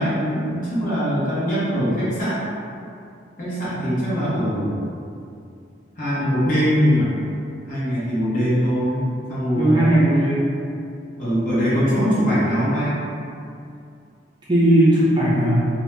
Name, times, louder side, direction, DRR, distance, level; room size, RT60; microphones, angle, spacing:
voice 1, 0.0-2.4 3.4-4.8 6.0-7.1 7.7-10.0 11.2-13.0, equal, 45° left, -11 dB, 1.0 m, -22 dB
voice 2, 9.6-10.5 14.5-15.6, right 1 dB, 25° right, -8 dB, 0.5 m, -17 dB
2.7 x 2.2 x 3.2 m, 2.5 s
head